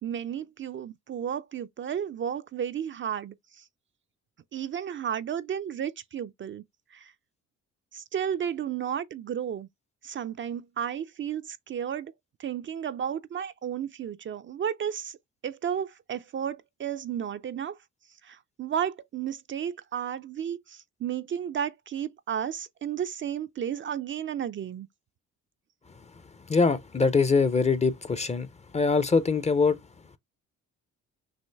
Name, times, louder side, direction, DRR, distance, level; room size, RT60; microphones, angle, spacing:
voice 1, 0.0-3.7 4.5-6.6 6.9-7.1 7.9-9.7 10.0-12.1 12.4-15.2 15.4-17.8 18.2-24.9, right 9 dB, 40° right, 0.4 m, -33 dB
voice 2, 26.5-28.5 28.7-29.8, left 4 dB, 20° left, 0.5 m, -23 dB
6.3 x 2.4 x 3.4 m
cardioid pair, 90°, 30 cm